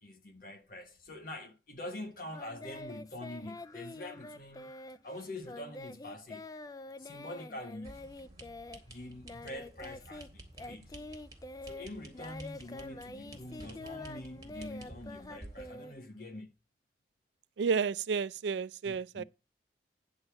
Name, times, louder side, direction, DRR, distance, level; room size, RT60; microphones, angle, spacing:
voice 1, 0.0-4.7 5.0-6.5 7.0-7.9 8.8-10.9 11.6-16.5 18.8-19.2, left 1 dB, 50° left, 1.3 m, -45 dB
Singing, 2.3-10.3 10.5-16.4, left 2 dB, 20° left, 0.4 m, -46 dB
sound 1, 7.8-15.7, right 1 dB, 20° right, 1.9 m, -52 dB
voice 2, 17.6-19.2, right 5 dB, 80° right, 0.4 m, -31 dB
9.9 x 4.1 x 6.8 m
head